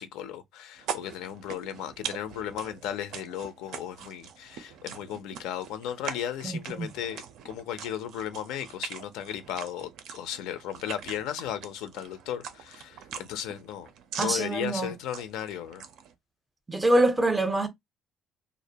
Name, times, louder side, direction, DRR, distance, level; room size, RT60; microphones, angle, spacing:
voice 1, 0.0-13.9 14.2-15.8, left 10 dB, 90° left, 0.4 m, -35 dB
sound 1, 0.8-16.1, right 8 dB, 70° right, 0.4 m, -42 dB
voice 2, 6.4-6.9 14.2-14.9 16.7-17.7, right 1 dB, 10° right, 0.5 m, -25 dB
2.4 x 2.1 x 2.7 m
cardioid pair, 145°, 0 cm